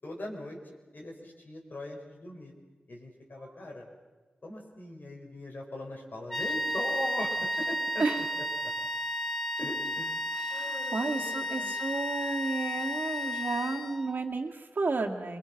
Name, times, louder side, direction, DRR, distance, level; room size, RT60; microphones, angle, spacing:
voice 1, 0.0-0.6 0.9-2.5 2.9-3.9 4.4-8.2 8.8-8.9 9.6-11.7, left 1 dB, 65° left, 0 dB, 5.1 m, -40 dB
sound 1, 6.3-14.2, left 1 dB, 5° left, 1.7 m, -33 dB
voice 2, 10.3-15.4, right 3 dB, 70° right, 2 dB, 2.1 m, -32 dB
26.0 x 22.0 x 6.0 m, 1.3 s
wide cardioid pair, 60°, 3 cm